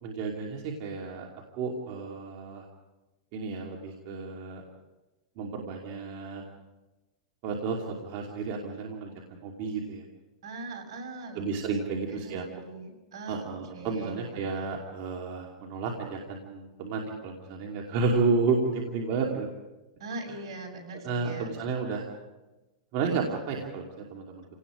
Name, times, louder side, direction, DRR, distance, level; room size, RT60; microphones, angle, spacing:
voice 1, 0.0-1.3 1.6-2.7 3.3-4.6 5.4-6.4 7.4-9.1 9.4-10.0 11.3-12.5 13.3-19.5 21.0-22.0 22.9-24.4, right 4 dB, 50° right, 0 dB, 2.7 m, -31 dB
voice 2, 10.4-11.4 11.9-14.4 20.0-21.5, right 2 dB, 70° right, 2 dB, 6.6 m, -41 dB
29.0 x 18.0 x 5.1 m, 1.1 s
hypercardioid pair, 135°, 3 cm